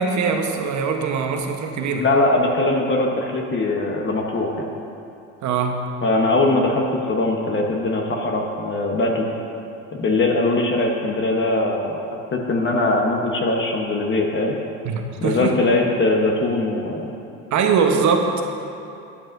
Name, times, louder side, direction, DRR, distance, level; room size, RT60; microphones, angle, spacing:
voice 1, 0.0-2.1 5.4-5.9 14.8-15.6 17.5-18.5, right 5 dB, 50° right, 4 dB, 1.1 m, -22 dB
voice 2, 2.0-4.7 6.0-9.3 10.0-12.0 12.3-14.5 15.2-17.1, left 2 dB, 30° left, 1 dB, 1.1 m, -21 dB
13.0 x 9.4 x 2.7 m, 2.8 s
hypercardioid pair, 85°, 38 cm